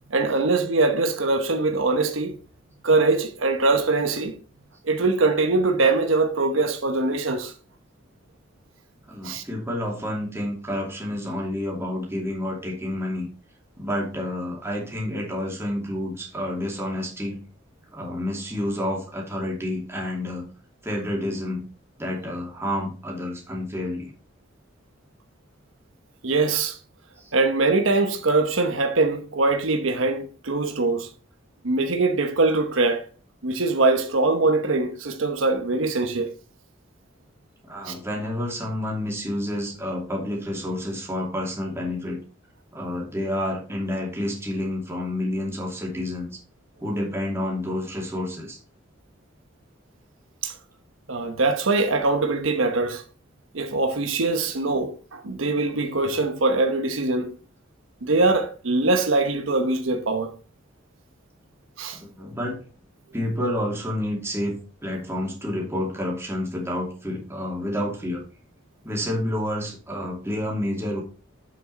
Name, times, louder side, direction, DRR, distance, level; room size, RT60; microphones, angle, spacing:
voice 1, 0.1-2.4 2.8-4.4 4.8-7.5 9.2-9.4 26.2-26.8 27.3-31.1 31.6-33.0 33.4-36.3 37.8-38.0 50.4-50.5 51.1-53.0 53.5-57.4 58.0-60.3 61.8-62.0, right 3 dB, 85° right, 1.0 m, -22 dB
voice 2, 9.1-13.3 13.8-17.4 17.9-20.4 20.8-21.6 22.0-24.1 27.2-27.3 37.7-42.2 42.7-46.4 46.8-48.6 61.9-62.6 63.1-68.2 68.8-71.0, left 1 dB, 15° right, 2.6 m, -29 dB
7.7 x 6.3 x 4.1 m
head